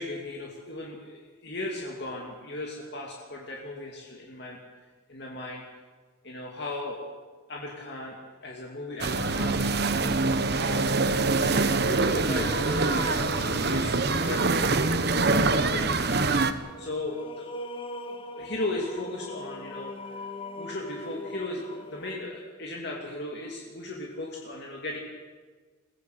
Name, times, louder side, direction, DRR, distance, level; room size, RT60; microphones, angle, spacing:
voice 1, 0.0-4.6 5.1-5.6 6.2-7.1 7.5-10.0 10.6-11.0 11.4-16.4 16.8-17.5 18.2-20.3 20.6-25.0, left 2 dB, 55° left, -2 dB, 2.8 m, -37 dB
sound 1, 9.0-16.5, right 3 dB, 50° right, 1.1 m, -24 dB
sound 2, 12.3-22.2, left 2 dB, 25° left, 1.4 m, -41 dB
22.5 x 16.0 x 8.3 m, 1.5 s
head